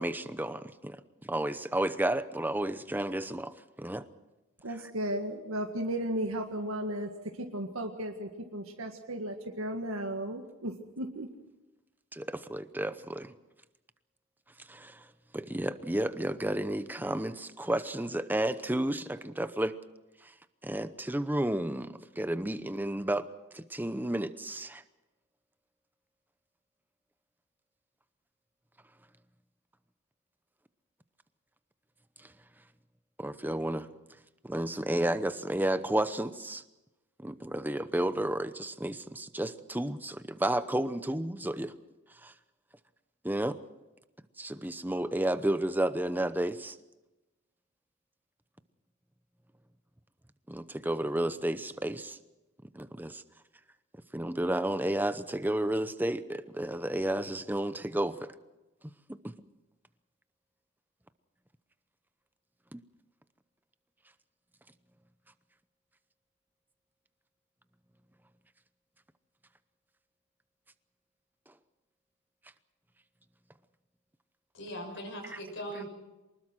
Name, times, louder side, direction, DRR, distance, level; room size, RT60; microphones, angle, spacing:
voice 1, 0.0-4.0 4.7-4.9 12.1-13.3 14.7-15.1 15.3-19.8 20.6-23.3 23.5-24.8 33.2-33.9 34.4-36.6 37.2-41.7 42.2-42.3 43.2-43.6 44.4-46.8 50.5-52.2 52.7-53.2 54.1-58.3 59.1-59.2 62.7-62.8 75.3-75.4, right 1 dB, 10° right, 12 dB, 0.8 m, -32 dB
voice 2, 4.6-7.1 7.5-11.3, right 1 dB, 80° right, 3 dB, 1.9 m, -35 dB
voice 3, 74.5-75.9, equal, 60° left, 2 dB, 6.4 m, -40 dB
24.5 x 20.5 x 6.3 m, 1.1 s
head